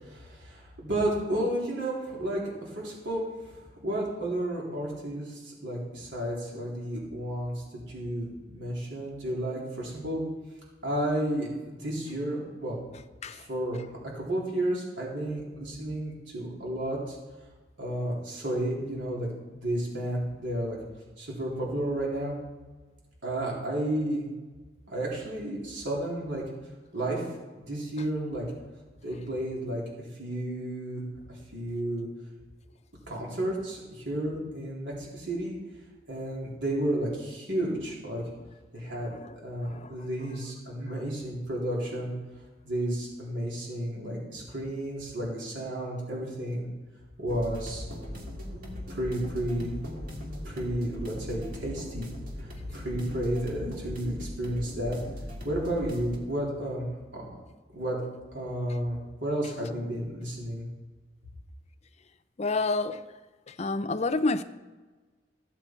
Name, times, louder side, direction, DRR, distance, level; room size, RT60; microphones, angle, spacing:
voice 1, 0.0-10.2 10.8-12.8 13.3-17.2 17.8-20.8 21.2-22.4 23.2-24.3 24.9-26.4 26.9-27.3 27.6-28.4 29.0-31.0 31.3-32.1 33.1-35.6 36.1-38.2 38.7-39.1 39.4-42.1 42.6-46.7 47.2-47.8 48.5-48.6 48.9-49.7 50.4-52.1 52.4-55.0 55.4-56.9 57.1-57.2 57.7-58.0 58.3-60.7, right 1 dB, 85° right, -4 dB, 3.5 m, -32 dB
sound 1, 47.3-56.2, left 1 dB, 50° right, 2.2 m, -39 dB
voice 2, 62.4-63.0 63.5-64.4, left 3 dB, 35° left, 9 dB, 0.6 m, -28 dB
15.0 x 8.3 x 4.5 m, 1.3 s
head